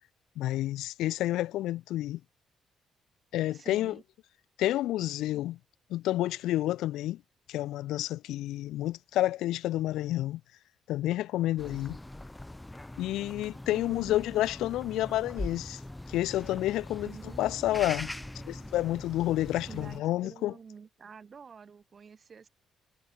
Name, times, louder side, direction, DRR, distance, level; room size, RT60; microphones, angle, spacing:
voice 1, 0.4-2.2 3.3-4.0 4.6-5.6 5.9-7.2 7.5-10.4 10.9-12.0 13.0-15.8 16.1-17.1 17.4-18.1 18.5-20.5, left 15 dB, 90° left, 0.5 m, -29 dB
voice 2, 3.5-4.0 13.7-14.3 17.0-18.9 19.7-22.5, right 6 dB, 45° right, 3.1 m, -49 dB
sound 1, 11.6-20.0, left 1 dB, 10° left, 3.7 m, -42 dB
cardioid pair, 90°, 0 cm